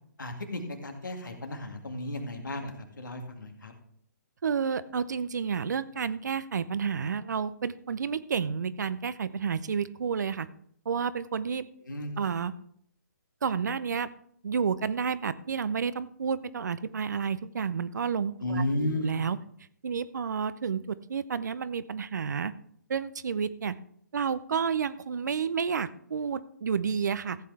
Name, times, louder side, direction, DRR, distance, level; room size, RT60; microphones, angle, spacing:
voice 1, 0.2-3.7 11.8-12.3 18.4-19.3, left 1 dB, 80° left, 4 dB, 2.2 m, -34 dB
voice 2, 4.4-10.5 10.9-11.7 12.2-12.5 13.4-14.1 14.4-19.4 19.8-22.5 22.9-23.8 24.1-27.4, right 6 dB, 65° right, 16 dB, 0.6 m, -30 dB
15.0 x 8.3 x 3.4 m, 0.67 s
figure-of-eight pair, 135°, 10 cm